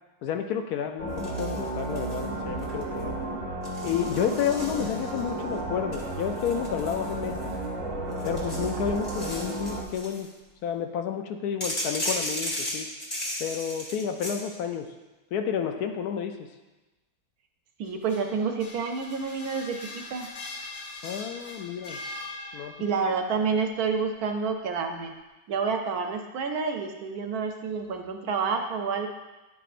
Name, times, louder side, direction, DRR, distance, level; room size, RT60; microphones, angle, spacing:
voice 1, 0.2-3.2 3.8-7.4 8.2-10.3 10.6-12.9 13.4-14.9 15.3-16.5 21.0-22.0 22.5-22.7, left 8 dB, 75° left, 5 dB, 1.0 m, -30 dB
sound 1, 1.0-9.8, right 2 dB, 25° right, 0.8 m, -33 dB
sound 2, 1.2-2.3 2.6-3.0 3.6-5.3 5.9-7.6 8.1-10.3 11.6-14.4, left 1 dB, 25° left, 1.4 m, -35 dB
voice 2, 17.8-20.3 22.8-25.1 25.5-29.1, right 5 dB, 70° right, 4 dB, 1.1 m, -29 dB
sound 3, 17.9-23.0, left 2 dB, 55° left, 0.7 m, -41 dB
10.0 x 4.8 x 2.5 m, 1.1 s
omnidirectional pair, 1.8 m